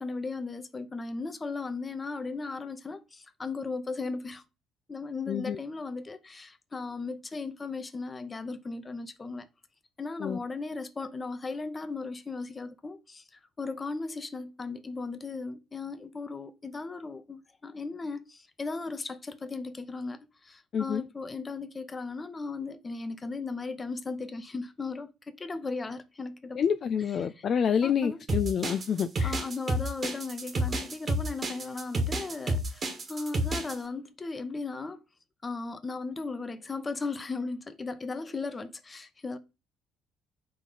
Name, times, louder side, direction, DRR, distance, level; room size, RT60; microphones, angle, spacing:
voice 1, 0.0-4.4 4.9-9.5 10.0-13.2 13.6-26.6 27.4-27.5 27.8-28.2 29.2-35.0 35.4-39.4, left 3 dB, 25° left, 1.0 m, -36 dB
voice 2, 5.3-5.6 10.2-10.4 20.7-21.0 26.6-29.4, left 7 dB, 50° left, 0.3 m, -28 dB
sound 1, 28.3-33.7, right 1 dB, 40° right, 1.8 m, -30 dB
5.1 x 3.7 x 5.3 m
figure-of-eight pair, 50°, 0 cm